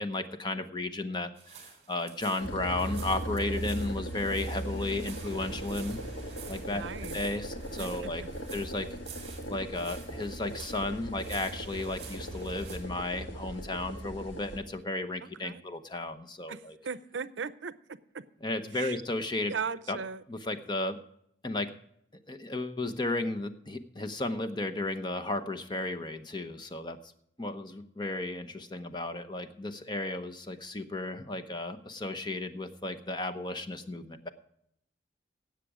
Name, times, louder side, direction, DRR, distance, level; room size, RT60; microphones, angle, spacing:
voice 1, 0.0-6.0 6.5-6.8 7.1-8.2 8.5-8.9 9.5-16.8 18.4-19.5 19.9-20.0 20.3-21.0 21.4-21.7 22.3-27.0 27.4-34.3, left 2 dB, 25° left, 0.8 m, -34 dB
sound 1, 1.4-12.8, right 6 dB, 35° right, 3.4 m, -50 dB
sound 2, 2.4-14.6, right 1 dB, 80° left, 1.8 m, -38 dB
voice 2, 6.7-7.2 7.8-8.3 15.2-15.6 16.5-17.7 18.1-18.2 18.7-19.0 19.5-20.2, right 5 dB, 75° right, 0.6 m, -38 dB
17.0 x 7.6 x 4.9 m
head